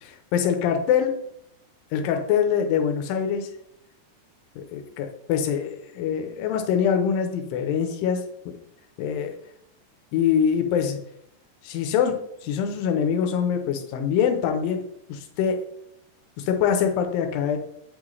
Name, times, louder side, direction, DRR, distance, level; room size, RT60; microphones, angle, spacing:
voice 1, 0.0-1.1 1.9-3.5 4.7-8.2 8.5-8.6 9.0-9.3 10.1-11.0 11.6-12.2 12.4-14.8 15.1-15.6 16.4-17.6, left 8 dB, 90° left, 5 dB, 2.5 m, -24 dB
8.4 x 3.8 x 3.1 m, 0.75 s
omnidirectional pair, 3.9 m